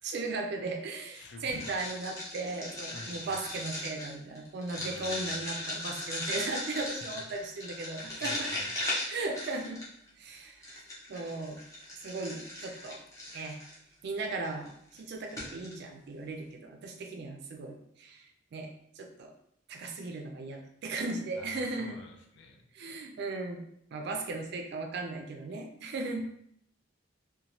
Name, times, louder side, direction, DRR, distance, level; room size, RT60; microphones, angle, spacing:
voice 1, 0.0-8.5 9.1-9.8 10.2-10.8 11.1-11.6 12.0-13.0 13.3-13.6 14.0-18.3 18.5-18.7 19.0-19.3 19.7-22.0 22.7-23.6 23.9-26.2, right 3 dB, 60° right, 3 dB, 0.3 m, -37 dB
voice 2, 1.1-1.8 2.9-3.4 4.8-5.4 6.7-6.8 7.8-8.7 10.3-10.6 21.4-22.6 25.5-25.6, left 3 dB, 65° left, 2 dB, 0.4 m, -50 dB
sound 1, 1.5-10.1 10.6-13.8 14.4-14.7 15.0-15.1 15.3-15.7, left 1 dB, 15° left, 0.8 m, -38 dB
2.9 x 2.2 x 2.7 m, 0.72 s
head